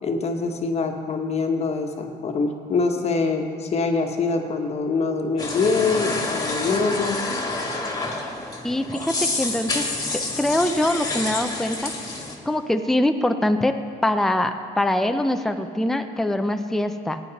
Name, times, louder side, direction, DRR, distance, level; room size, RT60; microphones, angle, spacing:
voice 1, 0.0-7.3, left 4 dB, 40° left, 4 dB, 1.3 m, -24 dB
sound 1, 5.4-12.4, left 2 dB, 20° left, 1.8 m, -28 dB
voice 2, 8.6-9.9 10.1-11.9 12.5-13.8 14.0-17.2, left 1 dB, ahead, 7 dB, 0.5 m, -23 dB
17.0 x 9.1 x 4.1 m, 2.3 s
cardioid pair, 110°, 17 cm